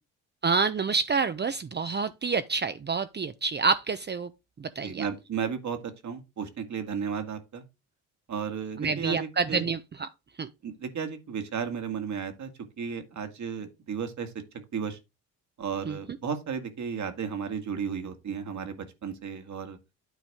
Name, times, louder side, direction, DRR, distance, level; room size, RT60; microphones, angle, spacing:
voice 1, 0.4-4.3 4.6-5.1 8.8-10.1 10.4-10.5 15.9-16.0, right 5 dB, 30° right, 0.7 m, -28 dB
voice 2, 4.8-7.6 8.3-9.6 10.6-12.5 12.8-14.3 14.7-15.0 15.6-19.8, right 6 dB, 55° right, 2.0 m, -34 dB
9.1 x 4.1 x 4.9 m
supercardioid pair, 70°, 34 cm